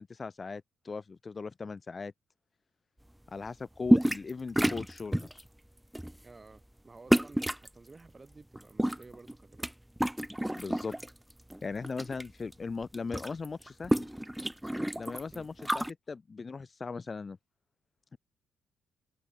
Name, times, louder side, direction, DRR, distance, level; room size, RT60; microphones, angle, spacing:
voice 1, 0.0-2.1 3.3-5.4 10.6-10.9 11.6-14.1 15.0-17.4 18.1-18.2, left 4 dB, 30° left, 2.3 m, -39 dB
sound 1, 3.9-4.3 4.6-5.4 5.9-6.2 7.1-7.7 8.6-9.7 10.0-11.1 11.5-12.2 12.5-12.6 12.8-15.9, right 1 dB, 5° right, 0.4 m, -28 dB
voice 2, 6.2-9.7 15.3-15.5, right 3 dB, 25° right, 7.0 m, -53 dB
cardioid pair, 90°, 0 cm